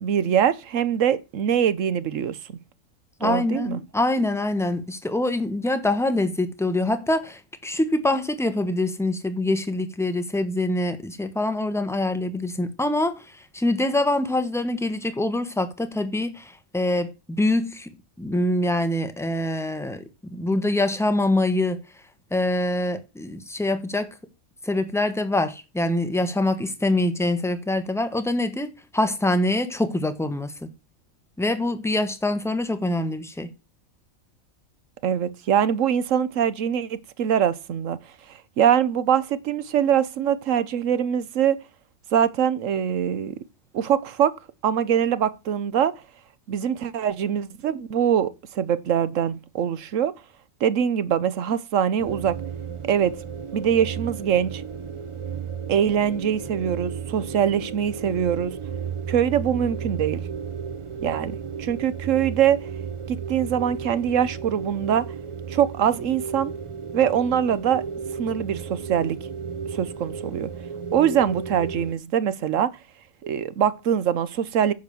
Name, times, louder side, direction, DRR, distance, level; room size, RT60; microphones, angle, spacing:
voice 1, 0.0-2.6 3.2-3.8 35.0-38.0 38.3-41.6 42.1-43.3 43.7-44.4 44.6-45.9 46.5-50.1 50.6-52.4 52.8-53.1 53.5-54.6 55.7-58.6 59.1-60.2 61.0-62.6 63.1-65.0 65.5-66.5 66.9-67.8 68.2-69.2 69.7-70.5 70.9-72.7 73.2-74.7, right 9 dB, 65° right, 1.1 m, -23 dB
voice 2, 3.2-21.8 22.3-24.1 24.6-30.7 31.4-33.5, left 1 dB, ahead, 0.9 m, -25 dB
sound 1, 52.0-71.9, right 6 dB, 50° right, 0.3 m, -34 dB
10.0 x 5.3 x 6.9 m
omnidirectional pair, 1.5 m